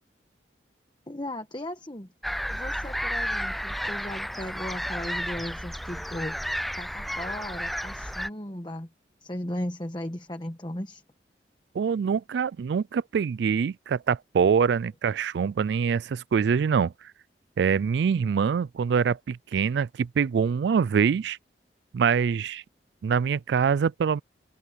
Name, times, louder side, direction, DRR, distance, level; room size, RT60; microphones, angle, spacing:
voice 1, 1.1-2.1 2.5-8.9 9.2-11.0, left 1 dB, 25° left, 1.2 m, -36 dB
sound 1, 2.2-8.3, equal, ahead, 0.4 m, -32 dB
voice 2, 11.7-16.9 17.6-21.4 21.9-22.6 23.0-24.2, right 6 dB, 75° right, 0.3 m, -24 dB
open air
head